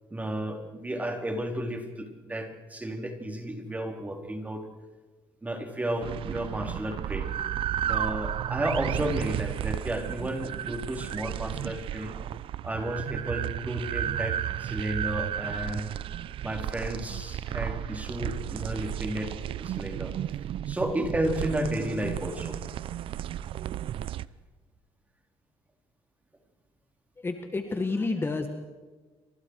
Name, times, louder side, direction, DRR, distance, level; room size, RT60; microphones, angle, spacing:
voice 1, 0.1-4.6 5.4-7.3 7.8-12.2 12.6-15.9 16.4-19.3 19.6-20.1 20.7-22.6, right 1 dB, 15° right, 3 dB, 4.0 m, -32 dB
sound 1, 6.0-24.3, right 11 dB, 60° right, 0.6 m, -33 dB
voice 2, 27.2-28.5, left 3 dB, 20° left, 6 dB, 1.9 m, -29 dB
28.5 x 26.0 x 4.9 m, 1.3 s
cardioid pair, 120°, 10 cm